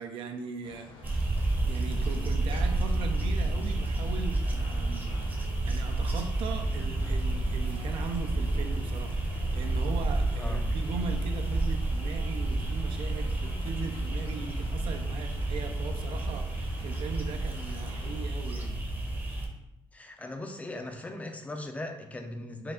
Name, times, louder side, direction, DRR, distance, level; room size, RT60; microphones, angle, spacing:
voice 1, 0.0-1.4 1.6-18.8, right 5 dB, 80° right, 5 dB, 0.5 m, -39 dB
sound 1, 0.6-18.3, left 1 dB, 80° left, 0.7 m, -48 dB
sound 2, 1.0-19.5, right 2 dB, 20° right, 0.7 m, -30 dB
sound 3, 2.5-4.9, left 2 dB, 55° left, 0.9 m, -52 dB
voice 2, 10.4-10.7 19.9-22.7, left 1 dB, 15° left, 5 dB, 0.4 m, -39 dB
4.6 x 2.4 x 3.6 m, 0.86 s
cardioid pair, 115°, 9 cm